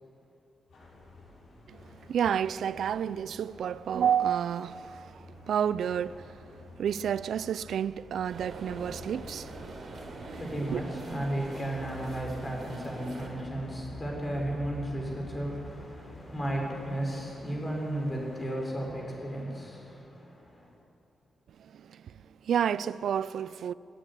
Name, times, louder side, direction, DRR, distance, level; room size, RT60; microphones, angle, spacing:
sound 1, 0.7-18.5, left 1 dB, 65° left, 7.0 m, -49 dB
voice 1, 1.7-6.5 6.8-10.0 10.2-10.8 21.6-23.7, right 8 dB, 70° right, 0.4 m, -31 dB
sound 2, 8.3-13.3, right 2 dB, 50° right, 4.1 m, -43 dB
voice 2, 9.9-20.7, right 1 dB, 20° left, 5.3 m, -34 dB
26.5 x 10.0 x 9.9 m
wide cardioid pair, 155°, 0 cm